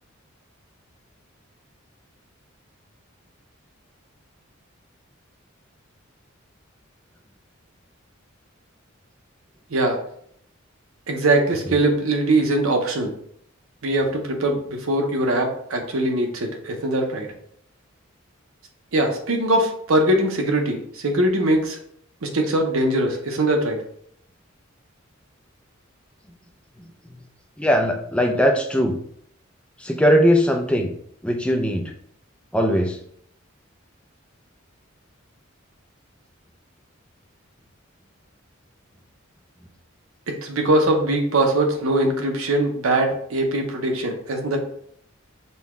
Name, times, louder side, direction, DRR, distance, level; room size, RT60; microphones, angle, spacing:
voice 1, 11.1-13.1 13.8-17.3 18.9-21.8 22.2-23.8 40.4-44.6, right 1 dB, 85° right, 3 dB, 0.8 m, -21 dB
voice 2, 27.6-29.0 29.8-30.9 31.2-31.9 32.5-33.0, equal, 5° left, 2 dB, 0.4 m, -19 dB
5.5 x 2.3 x 3.1 m, 0.66 s
head